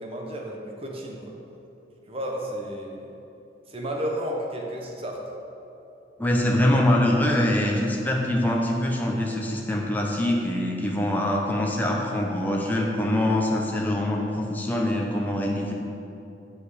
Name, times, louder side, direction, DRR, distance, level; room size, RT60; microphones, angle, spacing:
voice 1, 0.0-1.3 2.1-3.1 3.7-5.2, equal, 35° right, 0 dB, 1.0 m, -32 dB
voice 2, 6.2-15.7, left 1 dB, 10° left, -2 dB, 0.7 m, -24 dB
8.2 x 5.3 x 4.9 m, 2.8 s
head